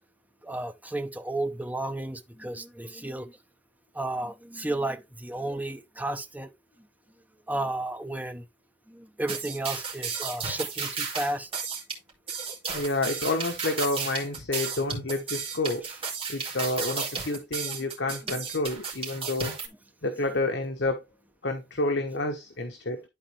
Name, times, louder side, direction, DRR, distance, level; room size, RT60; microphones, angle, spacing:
voice 1, 0.4-3.4 3.9-6.5 7.5-8.5 8.9-11.5 14.5-14.6 17.7-17.8 18.2-18.4, right 2 dB, 10° right, 0.8 m, -33 dB
sound 1, 9.3-19.7, right 5 dB, 30° right, 2.6 m, -33 dB
voice 2, 12.7-15.9 16.3-19.5 20.0-21.0 21.4-23.0, left 2 dB, 70° left, 1.1 m, -29 dB
11.5 x 4.2 x 3.2 m
head